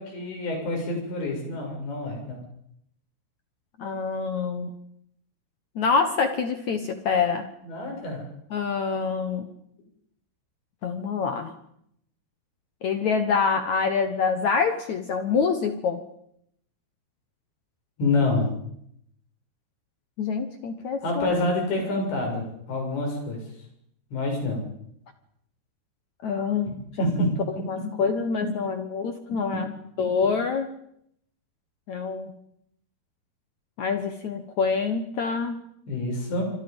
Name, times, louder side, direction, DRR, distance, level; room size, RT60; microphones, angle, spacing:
voice 1, 0.0-2.4 7.6-8.2 18.0-18.5 21.0-23.4 24.1-24.6 26.7-26.8 27.0-27.3 35.9-36.4, left 2 dB, 80° left, 1 dB, 9.5 m, -27 dB
voice 2, 3.8-4.7 5.8-7.5 8.5-9.5 10.8-11.5 12.8-16.0 20.2-21.4 26.2-29.7 30.0-30.7 31.9-32.3 33.8-35.6, left 5 dB, 65° left, 8 dB, 1.9 m, -26 dB
27.0 x 26.0 x 5.4 m, 0.73 s
omnidirectional pair, 5.0 m